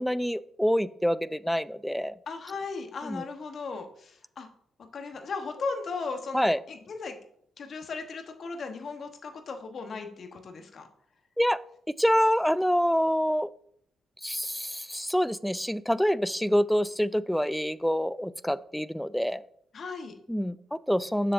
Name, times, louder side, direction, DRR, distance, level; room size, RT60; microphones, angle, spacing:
voice 1, 0.0-2.1 3.1-3.2 6.3-6.6 11.4-11.6 11.9-13.5 14.2-19.4 20.3-21.3, equal, 5° left, 17 dB, 0.3 m, -26 dB
voice 2, 2.3-4.5 4.9-7.2 7.6-10.9 19.7-20.1, left 4 dB, 60° left, 5 dB, 1.1 m, -37 dB
7.2 x 6.6 x 2.6 m, 0.68 s
supercardioid pair, 55°, 0 cm